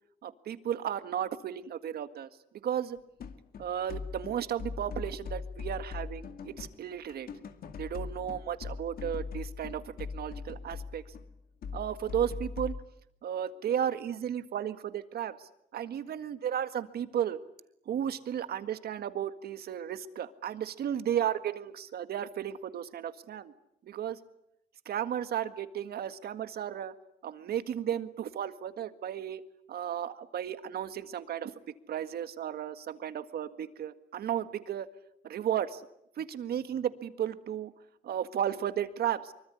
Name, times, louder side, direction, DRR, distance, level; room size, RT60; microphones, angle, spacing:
voice 1, 0.2-2.3 2.6-3.0 3.6-7.3 7.8-11.0 11.7-12.7 13.2-17.4 17.9-23.5 23.8-24.2 24.9-26.9 27.2-29.4 29.7-31.5 31.9-34.9 35.2-35.9 36.2-37.7 38.0-39.3, right 9 dB, 80° right, 11 dB, 1.8 m, -34 dB
sound 1, 3.2-12.8, left 5 dB, 70° left, 2.3 m, -40 dB
25.0 x 24.0 x 9.9 m, 0.77 s
wide cardioid pair, 140°, 16 cm